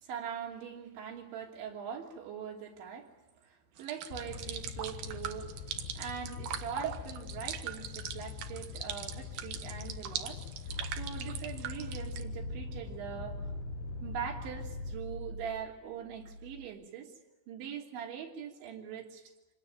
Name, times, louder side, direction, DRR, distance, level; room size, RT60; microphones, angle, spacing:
voice 1, 0.0-3.1 3.4-5.5 6.0-10.4 10.9-13.4 14.0-17.1 17.5-19.2, right 8 dB, 85° right, 0 dB, 5.4 m, -42 dB
sound 1, 3.8-12.2, right 10 dB, 65° right, 2.7 m, -40 dB
Fire, 4.1-14.9, left 8 dB, 70° left, 2.8 m, -44 dB
sound 2, 10.7-16.6, equal, 55° left, 3.6 m, -43 dB
26.5 x 19.5 x 9.0 m, 0.99 s
omnidirectional pair, 5.2 m